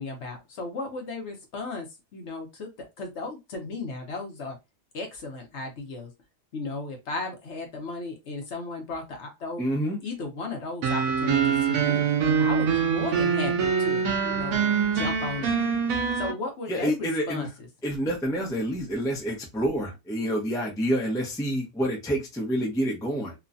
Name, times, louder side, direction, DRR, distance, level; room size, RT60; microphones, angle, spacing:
voice 1, 0.0-4.6 4.9-6.1 6.5-9.6 10.0-12.0 12.4-15.5 16.1-17.7, left 3 dB, 60° left, 3 dB, 1.0 m, -35 dB
voice 2, 9.6-10.0 16.7-17.5 17.8-23.3, equal, 5° left, -1 dB, 0.5 m, -28 dB
sound 1, 10.8-16.3, right 6 dB, 85° right, 1.1 m, -24 dB
3.0 x 2.2 x 2.5 m, 0.22 s
omnidirectional pair, 1.4 m